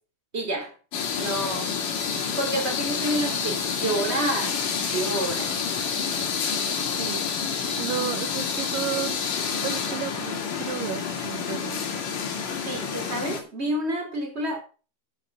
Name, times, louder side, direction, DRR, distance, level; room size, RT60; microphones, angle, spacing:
voice 1, 0.3-0.7 1.2-1.8 2.4-4.6 4.9-5.5 12.6-14.6, right 1 dB, 15° right, 3.4 m, -29 dB
sound 1, 0.9-13.4, left 6 dB, 55° left, 3.5 m, -28 dB
voice 2, 7.8-9.2 9.6-11.8, right 12 dB, 75° right, 2.1 m, -33 dB
10.5 x 7.9 x 5.7 m
omnidirectional pair, 4.6 m